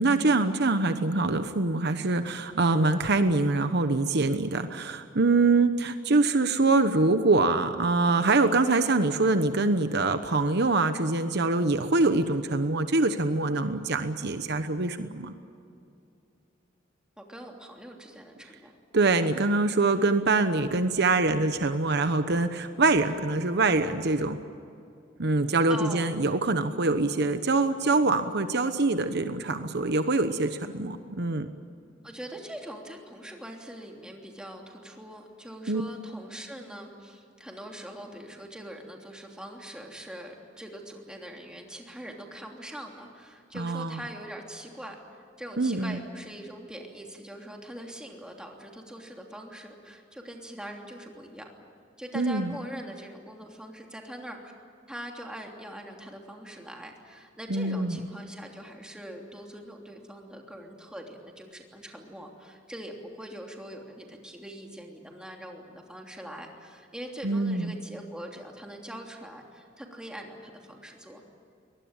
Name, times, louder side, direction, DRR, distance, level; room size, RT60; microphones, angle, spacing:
voice 1, 0.0-15.3 18.9-24.4 25.2-31.5 35.7-35.8 43.5-44.0 45.6-46.0 52.1-52.5 57.5-58.0 67.2-67.7, right 3 dB, 60° right, 9 dB, 1.0 m, -24 dB
voice 2, 17.2-18.8 25.7-26.1 32.0-45.0 45.4-51.5 52.0-54.5 54.9-71.2, right 1 dB, 5° right, 1 dB, 3.1 m, -42 dB
23.5 x 19.5 x 8.9 m, 2.5 s
head